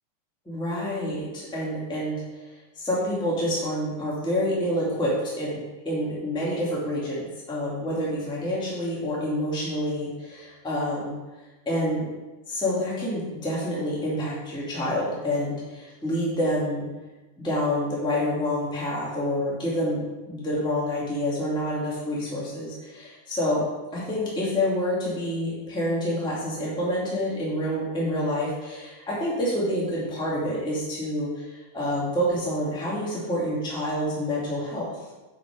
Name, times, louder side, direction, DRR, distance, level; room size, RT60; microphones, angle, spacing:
voice 1, 0.4-2.2 2.7-11.2 11.6-12.1 12.5-16.9 17.4-23.6 23.9-34.9, equal, ahead, -7 dB, 1.4 m, -28 dB
7.6 x 6.5 x 4.9 m, 1.1 s
omnidirectional pair, 4.8 m